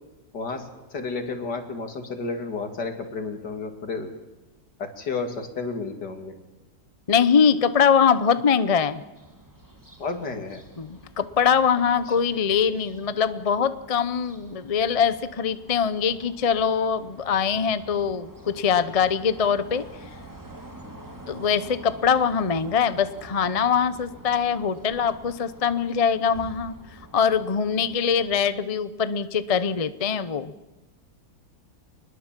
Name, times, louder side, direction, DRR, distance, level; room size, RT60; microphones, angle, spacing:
voice 1, 0.3-4.1 4.8-6.3 10.0-10.6, left 4 dB, 65° left, 6 dB, 3.0 m, -32 dB
voice 2, 7.1-9.0 10.8-19.8 21.3-26.8 27.1-30.5, left 7 dB, 45° left, 13 dB, 0.4 m, -23 dB
sound 1, 9.1-28.4, right 1 dB, 10° right, 2.6 m, -47 dB
25.0 x 21.0 x 7.5 m, 1.1 s
omnidirectional pair, 2.0 m